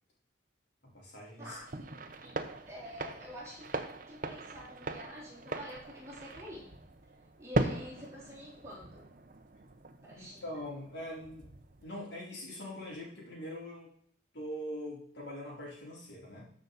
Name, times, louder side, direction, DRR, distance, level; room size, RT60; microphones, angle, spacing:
voice 1, 0.9-1.6 10.1-11.5 11.8-13.9 14.3-16.5, left 1 dB, 65° left, -4 dB, 3.9 m, -43 dB
sound 1, 1.4-12.0, right 2 dB, 45° right, 0.8 m, -40 dB
voice 2, 2.2-3.7 4.1-6.7 7.4-9.1 10.0-10.4, equal, 15° right, -5 dB, 3.4 m, -47 dB
13.5 x 6.0 x 4.1 m, 0.64 s
head